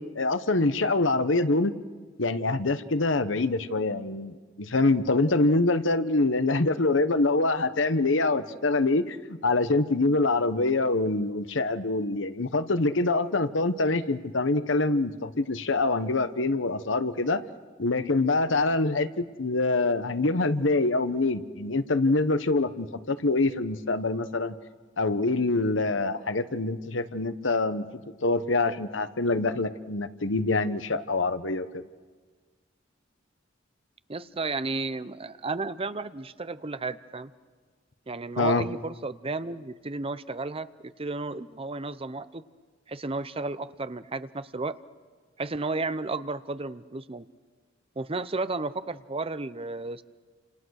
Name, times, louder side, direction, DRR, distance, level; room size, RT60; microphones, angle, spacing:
voice 1, 0.0-1.7 2.2-17.4 17.8-24.5 25.0-31.8 38.4-38.7, left 2 dB, 70° left, 12 dB, 1.1 m, -25 dB
voice 2, 34.1-37.3 38.1-40.7 41.0-42.4 42.9-44.8 45.4-47.3 48.0-50.0, right 3 dB, 30° right, 13 dB, 0.7 m, -33 dB
29.0 x 27.0 x 6.5 m, 1.5 s
head